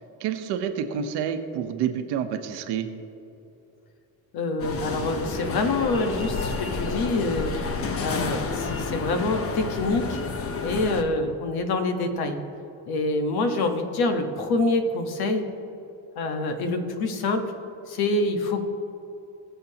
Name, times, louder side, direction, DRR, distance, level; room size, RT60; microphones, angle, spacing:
voice 1, 0.2-2.9, right 8 dB, 85° right, 7 dB, 1.1 m, -28 dB
voice 2, 4.3-7.5 8.0-10.2 10.6-12.4 12.9-15.5 16.2-17.4 17.9-18.6, left 2 dB, 65° left, 5 dB, 1.4 m, -26 dB
sound 1, 4.6-11.0, left 4 dB, 35° left, 0.9 m, -30 dB
20.5 x 7.0 x 3.0 m, 2.8 s
cardioid pair, 110°, 39 cm